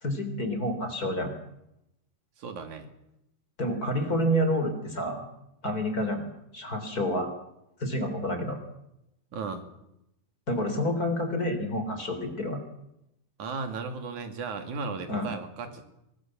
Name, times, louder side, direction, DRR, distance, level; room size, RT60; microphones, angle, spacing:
voice 1, 0.0-1.3 3.6-5.2 5.6-6.2 6.5-7.3 7.8-8.6 10.5-12.6 15.1-15.3, equal, 25° left, 7 dB, 3.5 m, -28 dB
voice 2, 2.4-2.9 9.3-9.7 13.4-15.9, right 4 dB, 60° right, 7 dB, 3.8 m, -35 dB
24.0 x 19.5 x 7.5 m, 0.85 s
omnidirectional pair, 3.9 m